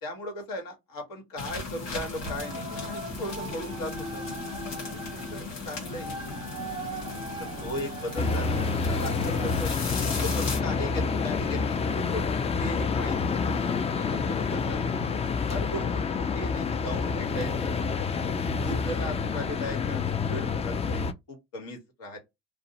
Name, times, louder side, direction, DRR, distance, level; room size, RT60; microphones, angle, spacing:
voice 1, 0.0-4.2 4.9-6.2 7.4-8.6 8.9-9.7 10.2-13.4 13.9-14.8 15.5-16.0 16.3-17.9 18.6-22.2, equal, 65° left, 1.3 m, -37 dB
sound 1, 1.4-10.6, left 4 dB, 85° left, 1.1 m, -37 dB
sound 2, 2.2-9.7, right 2 dB, 15° right, 0.7 m, -39 dB
sound 3, 8.2-21.1, left 5 dB, 20° left, 0.3 m, -28 dB
2.5 x 2.0 x 2.8 m
hypercardioid pair, 70°, 36 cm